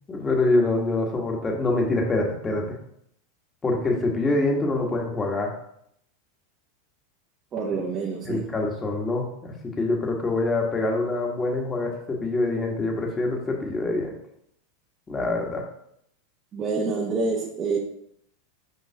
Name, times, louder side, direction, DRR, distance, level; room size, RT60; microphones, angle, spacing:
voice 1, 0.1-2.8 3.6-5.5 8.2-14.2 15.1-15.6, left 2 dB, 20° left, 0 dB, 1.4 m, -25 dB
voice 2, 7.5-8.6 16.5-17.8, right 4 dB, 35° right, -2 dB, 1.0 m, -27 dB
5.5 x 5.2 x 3.4 m, 0.73 s
hypercardioid pair, 105°, 0 cm